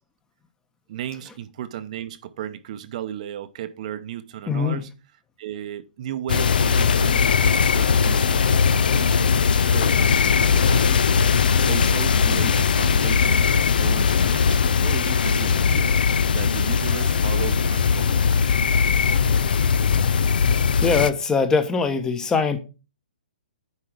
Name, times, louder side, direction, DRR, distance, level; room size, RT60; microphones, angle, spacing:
voice 1, 0.9-4.9 5.4-11.1 11.4-16.0 16.3-18.4, right 11 dB, 50° right, 0.8 m, -35 dB
voice 2, 4.5-4.8 20.8-22.6, left 5 dB, 10° left, 1.0 m, -22 dB
sound 1, 6.3-21.1, left 6 dB, 70° left, 0.6 m, -19 dB
9.8 x 4.8 x 4.8 m
hypercardioid pair, 140°, 5 cm